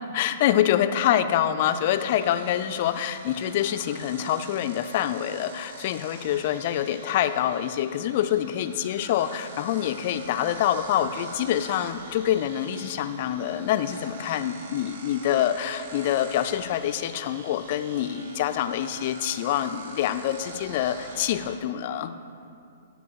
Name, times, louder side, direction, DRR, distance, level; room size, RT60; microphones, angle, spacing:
voice 1, 0.1-22.2, left 11 dB, 45° left, 10 dB, 0.4 m, -26 dB
sound 1, 1.6-21.6, right 2 dB, 60° right, 1.4 m, -45 dB
12.0 x 5.3 x 4.6 m, 2.5 s
figure-of-eight pair, 115°, 0 cm